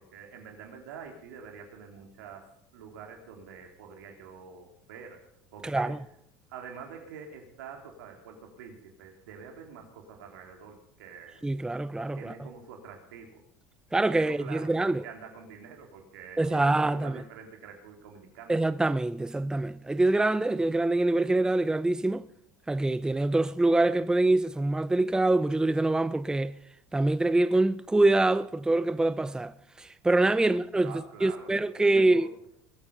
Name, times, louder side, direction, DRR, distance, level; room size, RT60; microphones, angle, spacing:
voice 1, 0.0-2.5 2.7-5.2 5.5-5.9 6.5-11.4 12.2-13.4 14.1-18.6 30.4-30.5 30.8-31.5 31.8-32.3, right 6 dB, 90° right, 3.6 m, -46 dB
voice 2, 5.6-6.0 11.4-12.3 13.9-15.0 16.4-17.2 18.5-22.3 22.7-26.5 26.9-29.5 29.8-30.9 31.2-32.3, right 2 dB, 5° right, 0.5 m, -25 dB
21.0 x 8.7 x 5.5 m
supercardioid pair, 95°, 10 cm